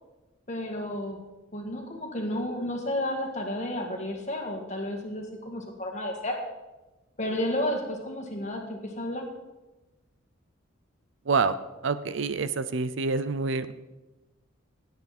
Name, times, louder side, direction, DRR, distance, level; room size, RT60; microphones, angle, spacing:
voice 1, 0.5-1.2 1.5-6.4 7.2-9.2, left 1 dB, 35° left, 2 dB, 1.9 m, -32 dB
voice 2, 11.3-11.6 11.8-13.7, right 4 dB, 60° right, 14 dB, 0.5 m, -27 dB
17.0 x 8.2 x 4.3 m, 1.1 s
head